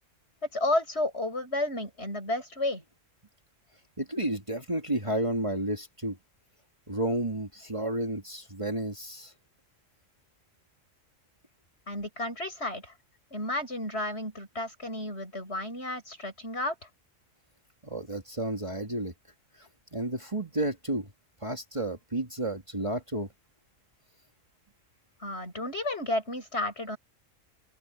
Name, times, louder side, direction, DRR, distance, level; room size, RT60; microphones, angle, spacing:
voice 1, 0.5-2.8 11.9-12.9 13.3-16.7 25.2-27.0, left 1 dB, 55° left, 8.3 m, -32 dB
voice 2, 4.0-6.2 6.9-9.3 17.8-19.1 19.6-21.1 21.4-23.3, right 1 dB, 25° right, 2.4 m, -31 dB
open air
omnidirectional pair, 1.3 m